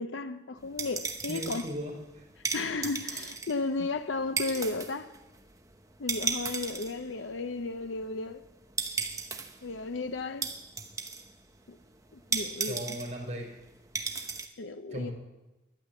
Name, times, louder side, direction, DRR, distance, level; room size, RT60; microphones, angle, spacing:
voice 1, 0.0-1.7 2.5-5.1 6.0-8.4 9.6-10.5 11.7-11.8 12.1-12.8 14.6-15.1, left 3 dB, 80° left, 0.7 m, -34 dB
sound 1, 0.6-14.5, right 4 dB, 15° right, 0.9 m, -36 dB
voice 2, 1.3-2.3 12.6-13.6 14.9-15.1, equal, 35° right, 4.0 m, -37 dB
12.0 x 10.5 x 8.2 m
head